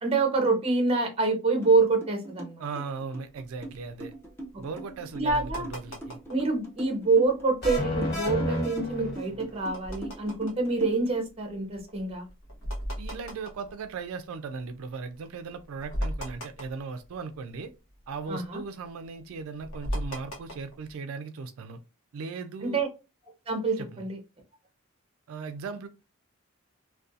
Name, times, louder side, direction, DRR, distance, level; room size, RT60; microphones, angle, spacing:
voice 1, 0.0-2.6 5.2-5.7 6.3-12.3 18.3-18.6 22.6-22.9 23.5-24.2, right 3 dB, 25° right, 0.6 m, -26 dB
sound 1, 1.6-1.7 2.0-11.2, right 2 dB, 10° left, 0.6 m, -40 dB
voice 2, 2.6-4.1 4.6-6.2 13.0-17.7 18.1-21.8 22.1-22.8 23.8-24.1 25.3-25.9, right 4 dB, 80° right, 0.3 m, -38 dB
sound 2, 3.3-6.6 7.0-7.5 8.0-14.7 15.1-15.2 15.5-17.6 17.9-20.9, equal, 80° left, 0.9 m, -38 dB
sound 3, 7.6-9.6, left 1 dB, 50° left, 1.4 m, -30 dB
2.4 x 2.2 x 2.6 m
head